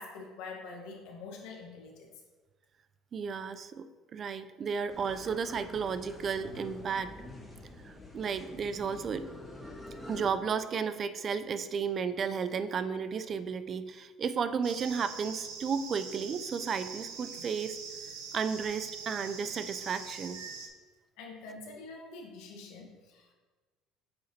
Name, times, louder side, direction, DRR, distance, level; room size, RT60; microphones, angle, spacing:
voice 1, 0.0-2.1 21.2-23.3, left 3 dB, 80° left, 1 dB, 1.3 m, -45 dB
voice 2, 3.1-7.1 7.8-9.3 10.1-17.8 18.3-20.4, right 6 dB, 40° right, 11 dB, 0.4 m, -33 dB
sound 1, 4.9-10.3, left 2 dB, 5° left, 1.6 m, -47 dB
sound 2, 14.6-20.7, right 5 dB, 90° right, 0.8 m, -43 dB
8.3 x 4.9 x 2.8 m, 1.3 s
supercardioid pair, 100°, 0 cm